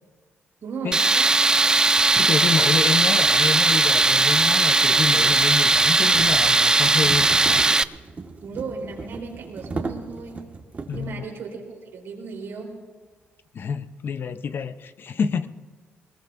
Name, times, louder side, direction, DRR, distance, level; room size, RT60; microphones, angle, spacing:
voice 1, 0.6-1.3 8.4-10.5 10.9-12.8, right 5 dB, 75° right, 0 dB, 3.5 m, -36 dB
Tools, 0.9-7.8, right 3 dB, 20° right, 0.3 m, -18 dB
voice 2, 2.2-7.6 10.9-11.3 13.5-15.5, left 6 dB, 55° left, 12 dB, 0.7 m, -28 dB
sound 1, 3.2-11.2, right 3 dB, 35° right, 1.5 m, -38 dB
22.0 x 20.0 x 2.6 m, 1.4 s
cardioid pair, 90°, 4 cm